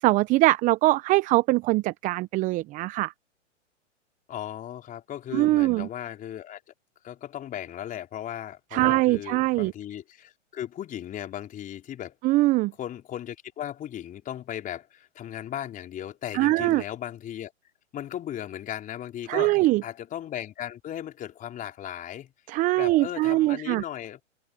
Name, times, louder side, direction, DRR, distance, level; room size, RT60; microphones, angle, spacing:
voice 1, 0.0-3.1 5.3-5.9 8.7-9.7 12.2-12.7 16.3-16.8 19.3-19.8 22.5-23.8, right 19 dB, 20° right, 0.7 m, -22 dB
voice 2, 4.3-6.6 7.0-12.2 12.8-17.5 17.9-22.3 22.8-24.2, left 11 dB, 20° left, 4.5 m, -37 dB
hypercardioid pair, 125°, 37 cm